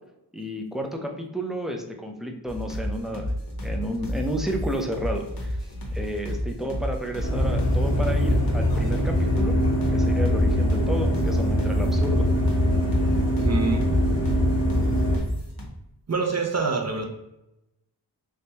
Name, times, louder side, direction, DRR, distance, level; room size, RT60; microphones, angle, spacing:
voice 1, 0.3-3.3 3.6-5.6 5.9-9.5 9.9-12.3 13.7-14.0, equal, ahead, 2 dB, 0.6 m, -31 dB
sound 1, 2.5-15.7, equal, 55° left, 1.1 m, -31 dB
sound 2, 7.2-15.2, equal, 35° left, 1.3 m, -22 dB
voice 2, 13.4-13.8 16.1-17.0, right 4 dB, 40° right, 2 dB, 0.7 m, -25 dB
3.2 x 3.2 x 2.8 m, 0.89 s
wide cardioid pair, 50°, 43 cm